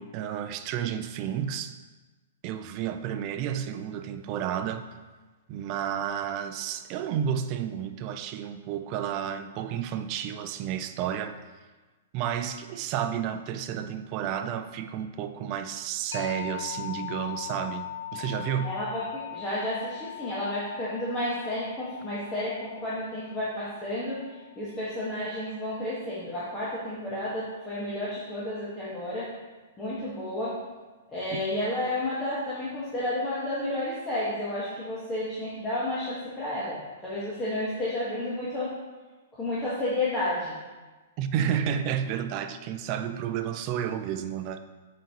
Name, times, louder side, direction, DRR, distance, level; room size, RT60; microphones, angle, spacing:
voice 1, 0.0-1.8 2.4-4.9 5.5-11.4 12.1-18.7 31.3-31.4 41.2-44.6, right 9 dB, 40° right, 9 dB, 0.5 m, -31 dB
sound 1, 16.1-25.5, left 12 dB, 90° left, 1.0 m, -41 dB
voice 2, 18.6-24.2 24.5-29.3 29.8-30.5 31.1-38.7 39.3-40.6, left 1 dB, 15° left, -9 dB, 1.5 m, -31 dB
7.4 x 5.2 x 3.0 m, 1.2 s
hypercardioid pair, 140°, 0 cm